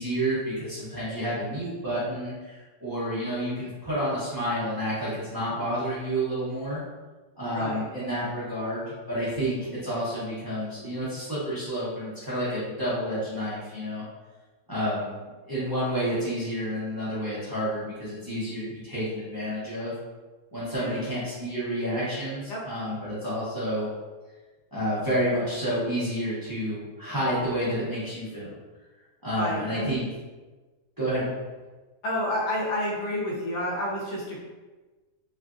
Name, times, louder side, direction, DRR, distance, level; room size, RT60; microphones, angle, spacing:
voice 1, 0.0-6.8 7.4-14.0 14.7-15.1 15.4-19.9 20.5-23.9 24.7-28.5 29.2-30.0 31.0-31.3, equal, 20° right, -11 dB, 0.6 m, -30 dB
voice 2, 7.5-7.9 20.8-21.0 22.5-22.6 29.4-29.9 32.0-34.4, left 1 dB, 75° left, -4 dB, 1.4 m, -29 dB
3.2 x 2.5 x 2.4 m, 1.3 s
omnidirectional pair, 1.8 m